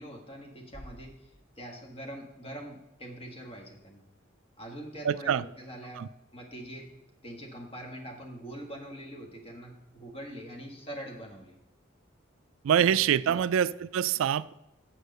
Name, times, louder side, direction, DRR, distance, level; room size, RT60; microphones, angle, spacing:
voice 1, 0.0-4.0 4.6-6.0 6.3-6.9 7.2-11.6 12.8-13.0 13.3-13.5, right 1 dB, 30° left, 1 dB, 1.5 m, -43 dB
sound 1, 0.7-2.5, equal, ahead, 4.1 m, -52 dB
voice 2, 5.0-5.4 6.0-6.1 12.6-14.5, right 9 dB, 80° right, 18 dB, 0.3 m, -25 dB
7.7 x 6.5 x 6.6 m, 0.88 s
head